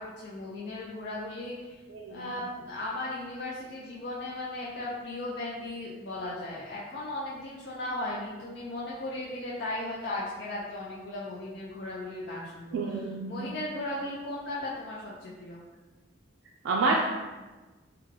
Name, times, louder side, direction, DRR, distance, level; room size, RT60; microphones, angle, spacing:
voice 1, 0.0-1.8 2.1-15.6, left 1 dB, 60° left, -5 dB, 0.4 m, -36 dB
voice 2, 12.7-13.5 16.6-17.1, right 3 dB, 90° right, -2 dB, 0.3 m, -28 dB
3.5 x 2.3 x 3.2 m, 1.2 s
head